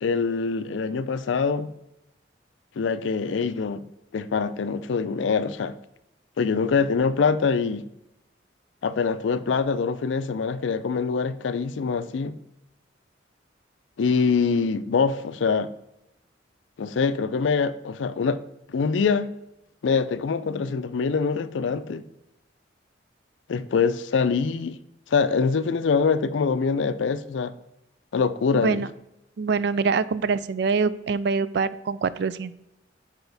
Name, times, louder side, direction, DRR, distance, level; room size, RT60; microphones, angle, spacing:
voice 1, 0.0-1.7 2.8-3.8 4.1-5.7 6.4-7.9 8.8-12.3 14.0-15.7 16.8-18.4 18.7-19.3 19.8-22.0 23.5-24.8 25.1-27.5 28.1-28.8, left 5 dB, 80° left, 0.4 m, -24 dB
voice 2, 28.5-28.9 29.4-32.5, right 5 dB, 60° right, 0.3 m, -24 dB
6.9 x 4.4 x 4.0 m
head